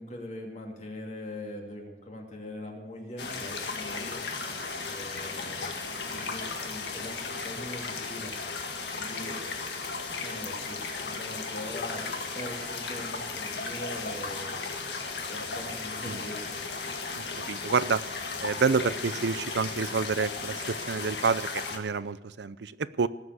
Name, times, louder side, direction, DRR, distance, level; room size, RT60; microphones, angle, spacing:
voice 1, 0.0-4.3 4.8-8.6 9.0-9.4 10.2-14.6 15.3-16.6, left 1 dB, 40° left, 1 dB, 2.7 m, -42 dB
sound 1, 3.2-21.8, left 4 dB, 75° left, 1.8 m, -35 dB
voice 2, 17.2-18.0 18.4-23.1, right 5 dB, 80° right, 16 dB, 0.6 m, -28 dB
18.5 x 7.5 x 8.2 m, 1.1 s
head